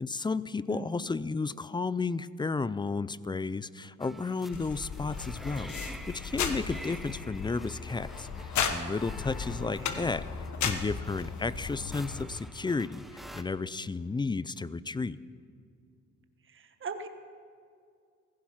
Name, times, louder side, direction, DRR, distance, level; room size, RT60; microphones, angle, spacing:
voice 1, 0.0-15.2, left 4 dB, 15° left, 17 dB, 0.4 m, -33 dB
voice 2, 0.7-1.1 9.6-10.1 16.5-17.1, right 4 dB, 40° right, 7 dB, 1.4 m, -41 dB
sound 1, 4.0-13.4, equal, ahead, 1.0 m, -48 dB
sound 2, 4.5-12.2, left 6 dB, 70° left, 1.3 m, -35 dB
sound 3, 8.7-12.4, left 6 dB, 35° left, 0.8 m, -51 dB
16.0 x 15.5 x 5.8 m, 2.3 s
cardioid pair, 90°, 30 cm